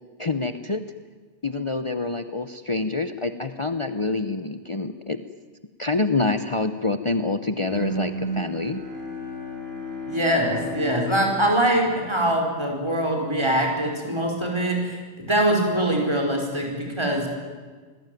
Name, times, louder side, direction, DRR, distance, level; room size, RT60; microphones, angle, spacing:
voice 1, 0.2-0.9 1.4-5.2 5.8-8.8, left 3 dB, 30° left, 9 dB, 0.9 m, -26 dB
Bowed string instrument, 7.7-12.7, left 1 dB, 60° right, 4.9 m, -33 dB
voice 2, 10.1-17.3, right 1 dB, 25° right, 0 dB, 4.9 m, -23 dB
26.5 x 20.5 x 9.3 m, 1.4 s
omnidirectional pair, 1.2 m